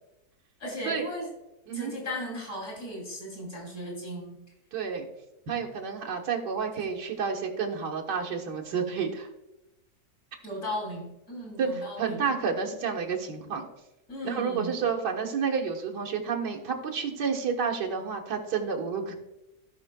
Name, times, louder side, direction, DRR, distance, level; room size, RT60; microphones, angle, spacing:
voice 1, 0.6-1.3 1.7-4.4 10.4-12.3 14.1-14.8, equal, 45° left, -2 dB, 3.2 m, -36 dB
voice 2, 4.7-5.1 5.5-9.3 11.6-11.7 12.0-13.6 14.2-19.2, right 6 dB, 85° right, 0 dB, 1.9 m, -30 dB
17.0 x 5.7 x 2.2 m, 0.92 s
omnidirectional pair, 1.8 m